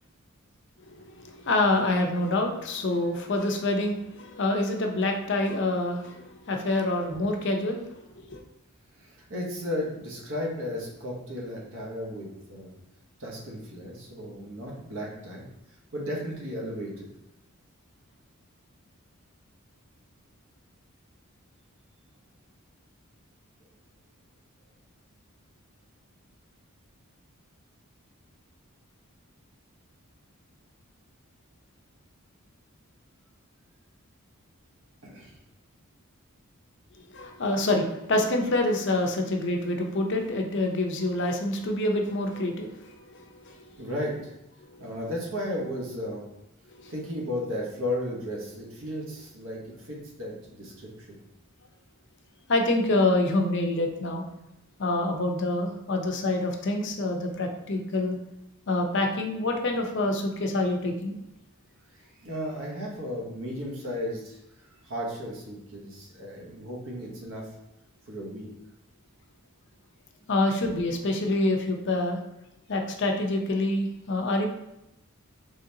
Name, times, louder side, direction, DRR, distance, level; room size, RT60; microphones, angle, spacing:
voice 1, 0.9-8.4 37.1-43.8 46.7-46.9 52.5-54.2 54.8-58.2 58.7-61.2 70.3-72.2 72.7-74.5, left 2 dB, 55° left, 3 dB, 0.5 m, -27 dB
voice 2, 8.9-12.7 13.2-15.4 15.9-17.1 35.0-35.4 43.8-44.3 44.8-46.2 46.9-50.9 61.9-64.4 64.8-67.5 68.0-68.5, left 1 dB, 60° right, -2 dB, 1.0 m, -34 dB
3.9 x 3.2 x 2.7 m, 0.86 s
head